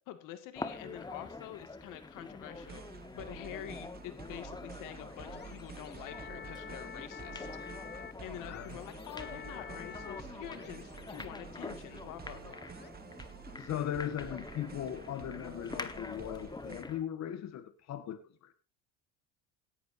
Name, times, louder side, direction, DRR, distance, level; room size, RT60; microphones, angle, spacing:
voice 1, 0.0-7.5 8.2-12.7, left 12 dB, 70° left, 9 dB, 2.2 m, -47 dB
sound 1, 0.6-17.1, left 3 dB, 15° left, 1.3 m, -46 dB
sound 2, 2.5-16.8, right 7 dB, 30° right, 1.2 m, -50 dB
sound 3, 4.2-12.9, left 7 dB, 30° left, 0.9 m, -50 dB
voice 2, 8.4-8.8 13.6-18.5, left 10 dB, 55° left, 9 dB, 1.8 m, -38 dB
17.5 x 11.0 x 2.8 m, 0.31 s
supercardioid pair, 105°, 33 cm